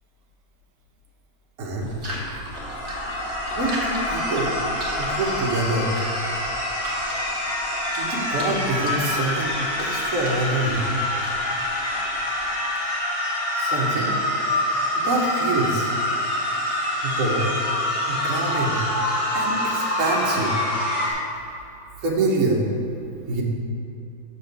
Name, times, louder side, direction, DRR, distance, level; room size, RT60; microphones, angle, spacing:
voice 1, 1.6-1.9 3.0-3.1 3.5-4.5 5.0-5.9 8.0-9.5 9.8-11.0 13.6-14.1 14.9-15.9 17.0-17.5 18.1-18.8 19.3-20.5 22.0-22.7 23.3-23.4, right 2 dB, 55° right, -3 dB, 1.3 m, -25 dB
sound 1, 1.8-12.7, right 1 dB, 40° right, 1.5 m, -38 dB
sound 2, 2.5-21.1, left 1 dB, 75° left, 2.2 m, -26 dB
6.6 x 4.2 x 6.6 m, 2.8 s
omnidirectional pair, 1.8 m